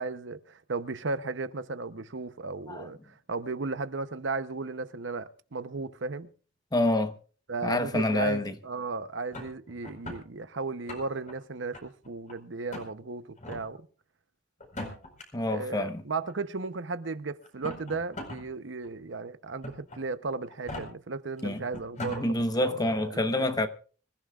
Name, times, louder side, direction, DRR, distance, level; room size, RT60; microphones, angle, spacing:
voice 1, 0.0-6.3 7.5-13.9 15.5-23.4, right 3 dB, 70° right, 0.8 m, -35 dB
voice 2, 6.7-7.1 7.6-8.4 15.3-16.0 21.4-21.6 22.0-23.7, left 1 dB, 20° left, 1.0 m, -27 dB
sound 1, 9.3-10.2 10.7-11.3 11.7-12.3 12.7-12.9 13.4-13.6 14.6-15.2 16.3-16.4 17.4-18.4 18.8-18.9 19.6-20.0 20.5-20.8 21.4-21.5 21.7-22.2, left 1 dB, 40° left, 4.6 m, -39 dB
25.5 x 15.0 x 2.4 m
head